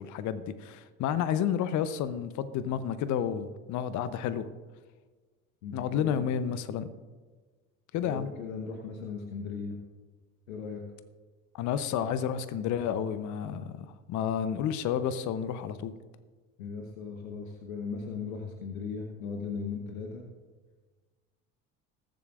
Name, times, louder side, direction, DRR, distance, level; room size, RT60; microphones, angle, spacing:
voice 1, 0.0-4.5 5.7-6.9 7.9-8.3 11.5-15.9, left 8 dB, 45° left, 13 dB, 0.7 m, -31 dB
voice 2, 5.6-6.3 8.1-9.8 10.5-10.8 16.6-20.2, left 5 dB, 80° left, 3 dB, 1.1 m, -37 dB
20.5 x 7.7 x 2.4 m, 1.4 s
hypercardioid pair, 65°, 41 cm